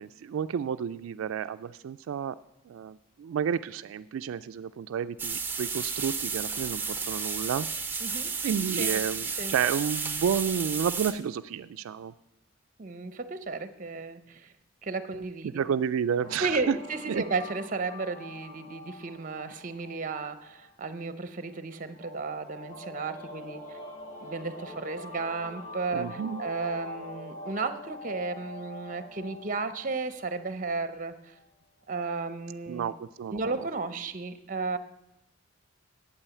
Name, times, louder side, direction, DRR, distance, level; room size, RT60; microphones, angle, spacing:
voice 1, 0.0-2.4 2.7-7.7 8.4-12.1 15.4-16.8 17.1-17.2 25.9-26.4 32.7-33.4, right 7 dB, 80° right, 11 dB, 0.3 m, -31 dB
sound 1, 5.2-11.1, right 5 dB, 10° right, 0.8 m, -32 dB
voice 2, 8.0-8.3 8.7-9.0 9.4-9.5 12.8-14.5 14.8-15.6 16.3-23.8 24.2-31.3 31.9-32.9 33.3-34.8, right 3 dB, 40° right, 12 dB, 0.7 m, -34 dB
sound 2, 16.2-31.5, left 1 dB, 45° left, 2.5 m, -45 dB
8.8 x 8.5 x 8.2 m, 0.87 s
head